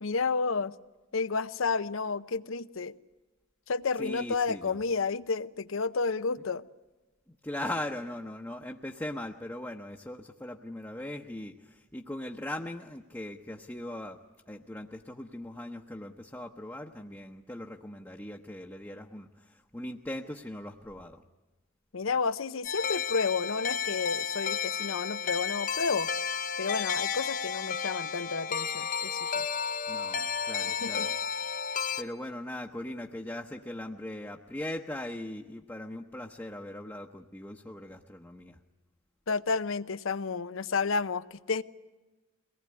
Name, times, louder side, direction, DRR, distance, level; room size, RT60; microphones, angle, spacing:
voice 1, 0.0-0.8 1.1-2.9 3.7-6.6 21.9-26.1 26.6-29.4 30.8-31.1 39.3-41.6, left 4 dB, 80° left, 0.7 m, -31 dB
voice 2, 4.0-4.8 7.3-14.2 14.5-21.2 29.9-31.1 32.0-38.6, left 1 dB, 10° left, 0.9 m, -40 dB
sound 1, 22.6-32.0, left 7 dB, 40° left, 0.8 m, -32 dB
23.0 x 19.0 x 9.6 m
head